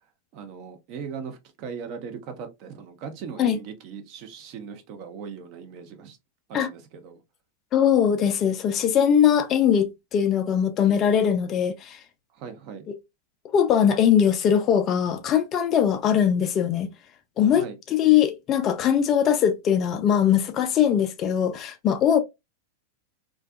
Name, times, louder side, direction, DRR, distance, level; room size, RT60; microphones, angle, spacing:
voice 1, 0.3-6.2 6.5-7.2 12.3-12.9 17.5-17.8, right 6 dB, 45° right, 0.6 m, -39 dB
voice 2, 7.7-12.0 13.5-16.9 17.4-22.2, left 8 dB, 30° left, 0.3 m, -21 dB
2.5 x 2.3 x 2.3 m
figure-of-eight pair, 90°, 0 cm